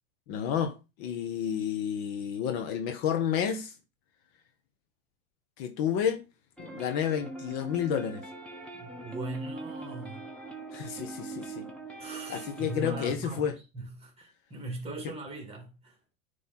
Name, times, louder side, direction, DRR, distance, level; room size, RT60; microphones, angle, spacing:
voice 1, 0.3-3.7 5.6-6.2 6.6-8.2 10.7-11.7 12.3-13.5, left 8 dB, 50° left, 1.2 m, -30 dB
sound 1, 6.6-13.1, right 2 dB, 5° left, 1.5 m, -42 dB
voice 2, 8.7-10.3 12.0-16.0, right 2 dB, 15° right, 2.4 m, -40 dB
9.4 x 3.4 x 4.3 m
hypercardioid pair, 120°, 40 cm